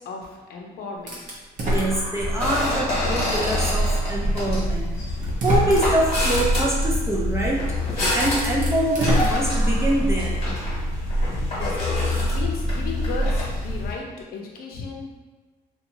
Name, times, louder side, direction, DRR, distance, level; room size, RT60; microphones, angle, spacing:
voice 1, 0.0-1.4 11.5-11.8 12.3-14.0 14.3-15.2, left 4 dB, 65° left, 0 dB, 0.6 m, -35 dB
sound 1, 1.1-2.7 3.2-3.3 4.5-4.6 5.2-6.2 7.6-7.7 8.1-10.1, equal, 50° right, 0.7 m, -26 dB
voice 2, 1.6-4.9 5.4-7.7 8.1-10.4, right 1 dB, 15° right, -4 dB, 0.5 m, -24 dB
sound 2, 2.2-13.9, left 1 dB, 35° left, 1.2 m, -25 dB
2.8 x 2.3 x 2.6 m, 1.3 s
cardioid pair, 110°, 17 cm